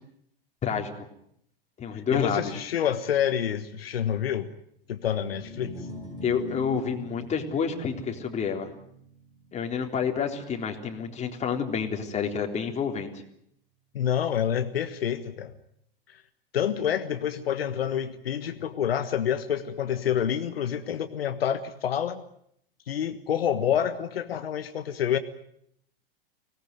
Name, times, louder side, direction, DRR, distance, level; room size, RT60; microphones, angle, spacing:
voice 1, 0.6-0.9 1.8-2.4 6.2-8.7 9.5-13.1, left 6 dB, 25° left, 3 dB, 3.7 m, -29 dB
voice 2, 1.9-4.5 4.9-5.9 13.9-15.5 16.1-16.2 16.5-22.2 22.9-25.2, left 9 dB, 80° left, 8 dB, 1.5 m, -28 dB
sound 1, 5.1-11.5, left 3 dB, 15° right, 8.0 m, -43 dB
25.0 x 18.5 x 9.3 m, 0.72 s
hypercardioid pair, 110°, 29 cm